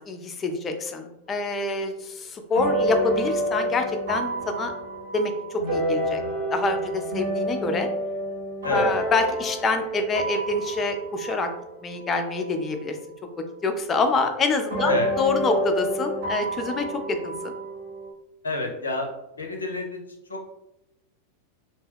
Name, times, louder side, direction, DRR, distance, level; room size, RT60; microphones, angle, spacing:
voice 1, 0.0-4.7 5.1-6.2 6.5-7.9 8.7-11.5 11.8-13.0 13.4-17.5, left 3 dB, 25° left, 6 dB, 0.4 m, -26 dB
sound 1, 1.3-1.4 2.6-12.4 13.1-13.2 14.7-18.1, right 1 dB, 60° right, 1.1 m, -29 dB
voice 2, 18.4-19.1 19.4-20.0 20.3-20.5, left 2 dB, 75° left, 3 dB, 0.5 m, -28 dB
2.6 x 2.2 x 3.3 m, 0.88 s
figure-of-eight pair, 90°, 0 cm